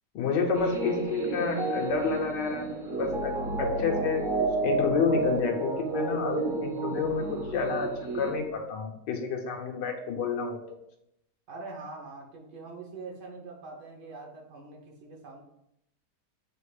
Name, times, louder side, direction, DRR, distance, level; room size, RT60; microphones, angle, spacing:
voice 1, 0.1-3.3 3.6-4.3 4.6-10.6, left 5 dB, 75° left, 2 dB, 1.5 m, -29 dB
sound 1, 0.5-8.3, right 3 dB, 40° right, 0.8 m, -31 dB
voice 2, 11.5-15.4, right 3 dB, 75° right, -1 dB, 1.8 m, -43 dB
7.5 x 2.5 x 4.9 m, 0.78 s
omnidirectional pair, 1.9 m